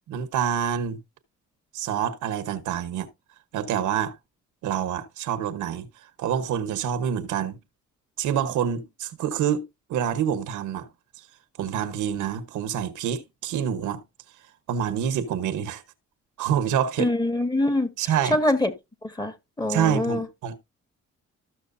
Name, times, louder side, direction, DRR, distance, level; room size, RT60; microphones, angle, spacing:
voice 1, 0.1-1.0 1.7-3.1 3.5-4.2 4.6-5.9 6.2-7.6 8.2-10.9 11.6-14.0 14.7-15.8 16.4-17.1 18.0-18.4 19.7-20.6, right 9 dB, 85° right, 1.1 m, -27 dB
voice 2, 17.0-17.9 18.3-18.7 19.0-20.3, left 1 dB, 15° left, 1.6 m, -24 dB
13.5 x 6.2 x 2.6 m
cardioid pair, 90°, 30 cm